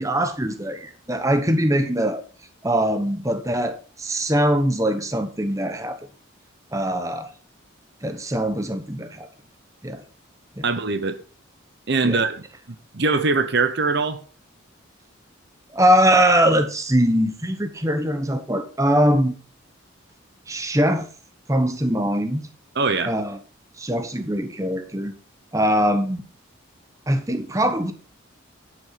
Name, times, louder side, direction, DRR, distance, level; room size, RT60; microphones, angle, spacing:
voice 1, 0.0-2.2 2.6-6.0 6.7-7.3 8.0-9.3 9.8-10.0 10.6-10.7 12.0-12.2 15.7-19.3 20.5-21.1 21.5-22.5 23.1-23.4 23.8-25.1 25.5-26.2 27.1-27.9, equal, 15° right, 1.0 m, -22 dB
voice 2, 10.6-11.2 11.9-12.4 12.9-14.2 22.8-23.1, right 3 dB, 55° right, 0.9 m, -22 dB
11.0 x 6.2 x 5.7 m
head